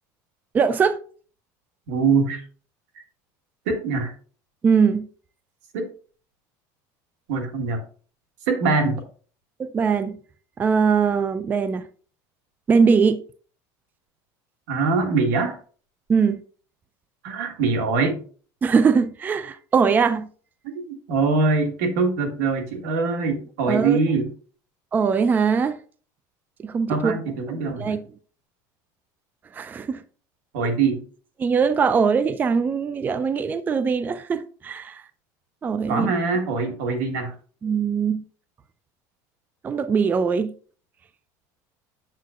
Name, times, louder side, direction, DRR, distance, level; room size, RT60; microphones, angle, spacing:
voice 1, 0.5-1.0 4.6-5.1 9.6-10.2 10.6-11.8 12.7-13.2 16.1-16.4 18.6-20.3 23.7-24.0 24.9-25.8 26.6-27.2 27.8-28.0 29.5-30.0 31.4-35.0 35.6-36.1 37.6-38.2 39.6-40.5, right 5 dB, 20° right, 0.4 m, -21 dB
voice 2, 1.9-2.4 3.7-4.1 5.7-5.9 7.3-7.8 8.5-9.0 14.7-15.6 17.2-18.2 20.6-24.3 26.9-28.0 30.5-31.0 35.9-37.3, right 4 dB, 90° right, 1.6 m, -23 dB
7.6 x 7.4 x 2.4 m
cardioid pair, 135°, 9 cm